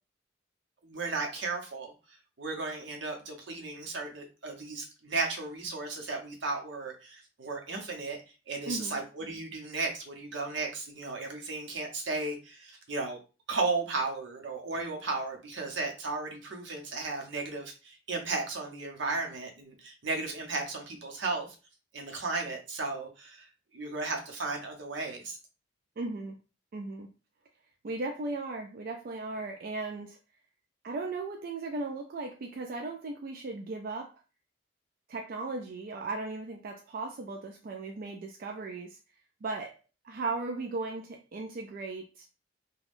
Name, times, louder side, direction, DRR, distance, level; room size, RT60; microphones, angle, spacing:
voice 1, 0.8-1.9 2.4-8.2 8.5-13.2 13.5-21.5 21.9-23.5 23.7-25.4, right 3 dB, 75° right, 2 dB, 0.8 m, -35 dB
voice 2, 8.6-9.0 26.0-26.3 26.7-27.1 27.8-30.2 30.8-34.1 35.1-39.0 39.4-39.8 40.0-42.3, right 3 dB, 50° right, 3 dB, 0.4 m, -37 dB
2.5 x 2.3 x 3.4 m, 0.32 s
head